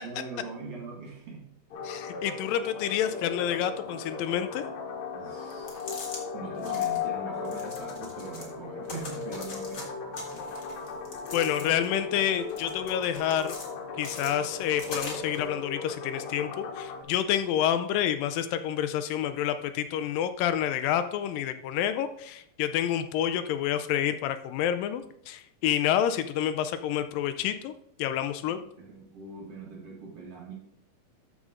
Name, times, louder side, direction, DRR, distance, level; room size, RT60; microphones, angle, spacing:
voice 1, 0.0-1.5 5.1-10.6 28.4-30.5, right 4 dB, 50° right, -2 dB, 2.2 m, -42 dB
sound 1, 1.7-17.0, left 6 dB, 60° left, 2.3 m, -37 dB
voice 2, 1.9-4.7 11.3-13.5 14.0-27.7 28.0-28.6, left 10 dB, 80° left, 11 dB, 2.2 m, -28 dB
sound 2, 5.5-6.2 6.6-7.0 7.4-8.5 8.8-9.8 10.1-11.9 12.3-13.7 14.0-15.4, left 3 dB, 40° left, 1.7 m, -42 dB
13.0 x 5.4 x 3.7 m, 0.71 s
omnidirectional pair, 4.1 m